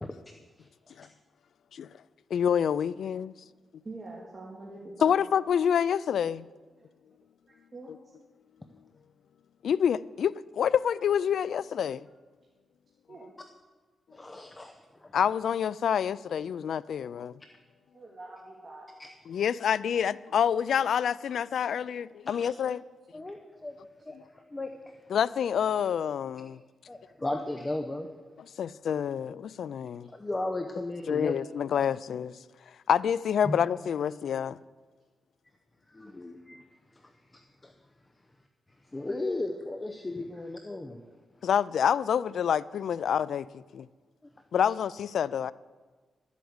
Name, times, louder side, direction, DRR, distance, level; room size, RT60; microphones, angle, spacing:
voice 1, 0.6-1.0 14.1-15.1 19.0-19.1 22.3-22.5 23.1-23.8 24.1-24.9 26.9-28.1 30.1-31.3 33.4-33.6 35.9-36.6 36.9-37.7 38.9-41.0, left 2 dB, 20° left, 0.8 m, -36 dB
voice 2, 2.3-3.3 5.0-6.5 7.9-8.0 9.6-12.1 15.1-17.4 19.3-22.8 24.1-24.2 25.1-26.6 28.6-30.1 31.1-32.3 32.9-34.6 41.4-43.9 44.5-45.5, left 8 dB, 80° left, 0.4 m, -27 dB
voice 3, 3.8-5.2 7.7-7.9 13.1-13.3 17.9-18.9 22.2-22.3, right 2 dB, 30° right, 2.4 m, -44 dB
12.5 x 8.3 x 7.9 m
cardioid pair, 105°, 0 cm